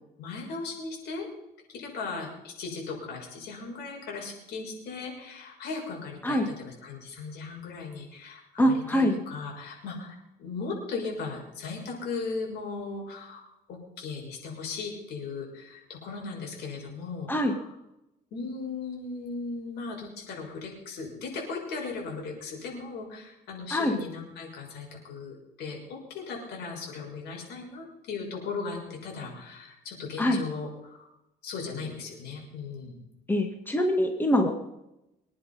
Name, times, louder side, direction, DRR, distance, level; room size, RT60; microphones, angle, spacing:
voice 1, 0.2-1.3 1.7-17.7 18.3-31.1 31.4-33.0, left 4 dB, 75° left, 0 dB, 6.4 m, -37 dB
voice 2, 8.6-9.2 17.3-17.5 23.7-24.0 30.2-30.4 33.3-34.5, equal, 10° left, 4 dB, 2.0 m, -24 dB
23.5 x 10.0 x 5.7 m, 0.89 s
cardioid pair, 110°, 17 cm